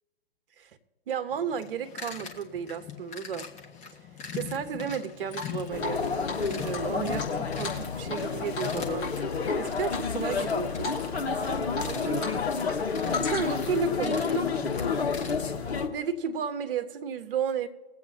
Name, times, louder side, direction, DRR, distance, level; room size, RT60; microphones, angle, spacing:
voice 1, 1.1-3.5 4.3-9.3 9.6-10.9 11.8-12.4 13.1-14.6 15.9-17.7, right 7 dB, 60° right, 10 dB, 1.2 m, -33 dB
sound 1, 1.3-15.6, left 7 dB, 20° left, 1.4 m, -42 dB
Drip, 5.3-6.0 6.3-6.4 6.7-8.3 8.5-8.7 9.0-9.5 9.9-10.5 10.8-11.0 11.3-12.3 12.6-13.7, left 4 dB, 40° left, 4.1 m, -36 dB
sound 2, 5.7-15.9, left 5 dB, 80° left, 1.4 m, -30 dB
22.0 x 8.2 x 2.8 m, 1.3 s
figure-of-eight pair, 115°, 32 cm